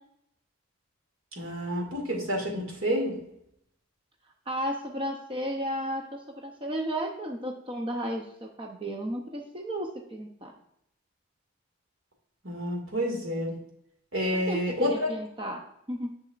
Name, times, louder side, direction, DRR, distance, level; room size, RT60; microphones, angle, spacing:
voice 1, 1.4-3.1 12.4-13.5 14.1-15.1, equal, 75° right, 0 dB, 2.3 m, -29 dB
voice 2, 4.5-10.5 14.3-15.6 15.9-16.1, equal, 25° right, 2 dB, 0.6 m, -33 dB
6.8 x 6.8 x 2.4 m, 0.75 s
head